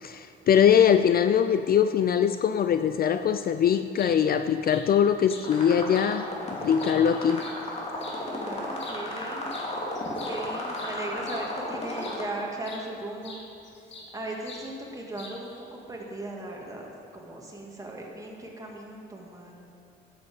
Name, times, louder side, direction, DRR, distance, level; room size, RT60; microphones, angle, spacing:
voice 1, 0.0-6.3 6.6-7.4, left 8 dB, 50° left, 10 dB, 0.4 m, -22 dB
sound 1, 4.0-4.1 4.7-4.8 5.3-5.5 5.9-6.1 6.6-8.2 8.7-9.0 9.5-9.7 9.9-12.3 12.6-12.8 13.2-14.1 14.4-14.7 15.1-15.6, left 3 dB, 65° left, 2.0 m, -45 dB
sound 2, 5.4-12.2, left 1 dB, 30° left, 2.6 m, -34 dB
voice 2, 8.2-9.5 10.2-13.4 14.1-19.6, right 1 dB, 15° right, -1 dB, 2.3 m, -38 dB
11.0 x 7.3 x 7.8 m, 2.6 s
cardioid pair, 90°, 20 cm